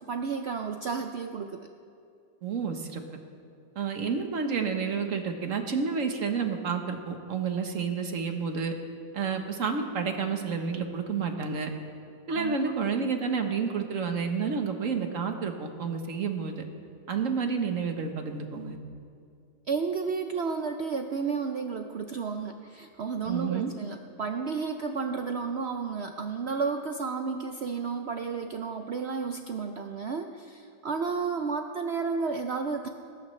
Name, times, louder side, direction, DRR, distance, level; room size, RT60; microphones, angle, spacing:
voice 1, 0.0-1.7 12.3-12.7 19.7-32.9, right 5 dB, 85° right, 5 dB, 0.5 m, -32 dB
voice 2, 2.4-3.0 3.7-8.7 9.1-11.7 12.3-16.6 17.1-18.8 23.3-23.7, right 5 dB, 50° right, 5 dB, 1.3 m, -30 dB
19.5 x 18.0 x 3.2 m, 2.4 s
omnidirectional pair, 1.9 m